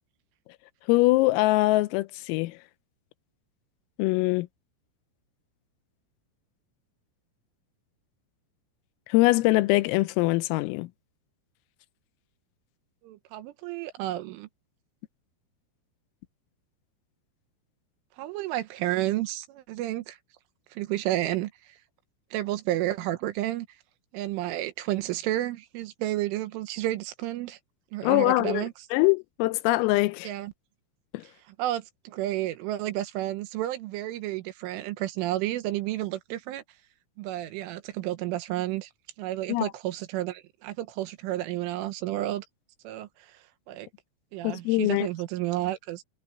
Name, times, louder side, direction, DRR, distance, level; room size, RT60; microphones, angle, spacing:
voice 1, 0.9-2.6 4.0-4.5 9.1-10.9 28.0-30.3 31.1-31.2 39.5-39.7 44.4-45.1, left 20 dB, 85° left, 3.4 m, -23 dB
voice 2, 13.0-14.5 18.2-20.2 20.7-21.7 22.3-23.7 24.1-27.6 27.9-28.7 30.2-30.5 31.6-36.6 37.2-38.9 39.2-42.4 42.8-43.9 44.3-46.0, right 14 dB, 75° right, 3.5 m, -31 dB
omnidirectional pair, 6.0 m